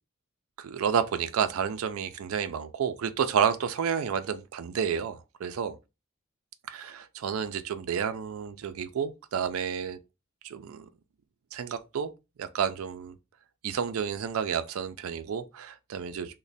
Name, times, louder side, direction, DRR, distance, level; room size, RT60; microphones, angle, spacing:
voice 1, 0.6-5.8 6.7-10.0 10.4-10.9 11.5-12.1 12.4-13.2 13.6-16.4, right 7 dB, 85° right, 0.4 m, -30 dB
3.1 x 2.1 x 3.9 m
head